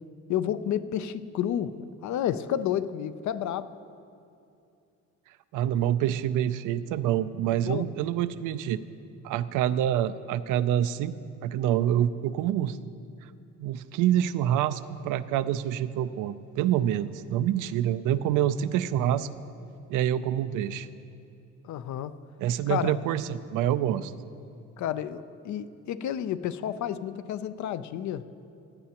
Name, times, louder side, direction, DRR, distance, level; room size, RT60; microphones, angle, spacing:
voice 1, 0.3-3.7 7.7-7.9 21.6-22.2 22.7-22.9 24.8-28.2, left 10 dB, 70° left, 13 dB, 0.5 m, -31 dB
voice 2, 5.5-8.8 9.2-11.1 11.4-12.8 13.6-19.3 19.9-20.9 22.4-24.1, right 11 dB, 90° right, 14 dB, 0.5 m, -26 dB
16.5 x 11.5 x 2.9 m, 2.5 s
cardioid pair, 90°, 30 cm